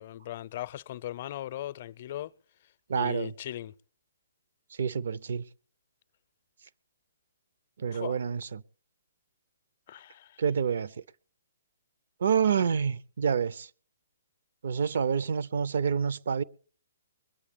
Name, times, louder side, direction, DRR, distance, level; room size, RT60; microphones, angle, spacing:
voice 1, 0.0-2.3 2.9-3.7 7.9-8.2 9.9-10.4, left 13 dB, 45° left, 0.6 m, -38 dB
voice 2, 2.9-3.3 4.8-5.4 7.8-8.6 10.4-10.9 12.2-13.7 14.6-16.4, right 7 dB, 65° right, 0.6 m, -28 dB
22.0 x 8.4 x 5.2 m
hypercardioid pair, 135°, 0 cm